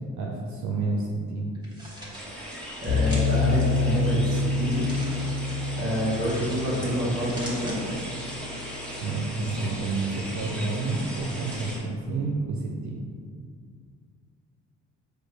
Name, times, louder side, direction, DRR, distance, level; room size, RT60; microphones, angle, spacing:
voice 1, 0.2-1.5 9.0-13.1, right 3 dB, 70° right, -1 dB, 0.6 m, -29 dB
sound 1, 1.6-2.2 3.0-3.5 4.7-5.3 6.3-6.8 7.1-7.8, equal, 15° right, 1.3 m, -41 dB
sound 2, 2.1-11.8, equal, 5° left, 1.3 m, -38 dB
voice 2, 2.8-4.9 5.7-7.8, right 1 dB, 50° right, -6 dB, 1.3 m, -27 dB
sound 3, 2.9-10.0, left 4 dB, 50° left, 1.0 m, -28 dB
5.0 x 2.3 x 4.6 m, 2.1 s
cardioid pair, 90°, 30 cm